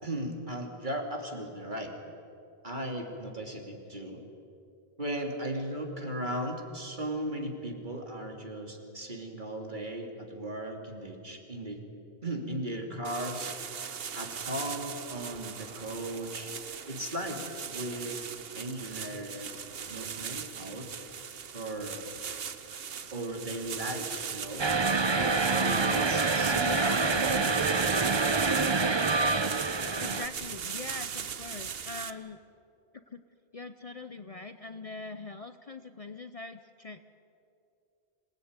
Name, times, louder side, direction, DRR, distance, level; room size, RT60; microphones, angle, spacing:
voice 1, 0.0-1.9 2.6-4.2 5.0-11.8 12.2-13.5 14.1-16.5 16.9-18.2 18.5-19.5 19.9-20.9 21.5-22.0 23.1-24.7 25.1-27.8, right 1 dB, 45° right, 2 dB, 3.2 m, -37 dB
sound 1, 13.0-32.1, right 7 dB, 65° right, 1.2 m, -39 dB
sound 2, 24.6-30.3, right 4 dB, 30° right, 0.7 m, -26 dB
voice 2, 26.6-27.3 30.0-32.4 32.9-33.2 33.5-37.1, left 3 dB, 40° left, 10 dB, 0.7 m, -42 dB
26.5 x 19.5 x 9.7 m, 2.7 s
omnidirectional pair, 1.1 m